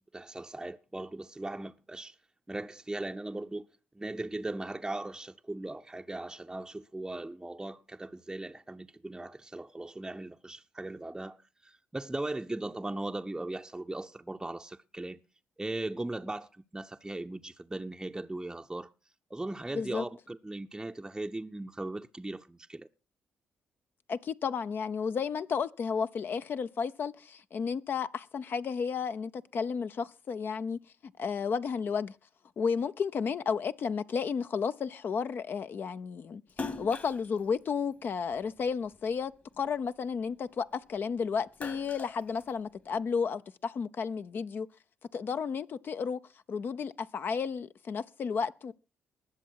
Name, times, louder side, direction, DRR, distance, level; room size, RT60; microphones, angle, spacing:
voice 1, 0.1-2.2 2.5-3.7 3.9-15.2 15.6-18.9 19.3-22.9, right 2 dB, 15° right, 0.7 m, -38 dB
voice 2, 24.1-32.2 32.6-44.7 45.1-46.2 46.5-48.7, left 6 dB, 55° left, 0.6 m, -32 dB
Splash splatter, 36.5-39.0 39.5-41.0 41.3-43.0, left 3 dB, 40° left, 1.8 m, -42 dB
20.0 x 7.1 x 4.6 m
hypercardioid pair, 50°, 4 cm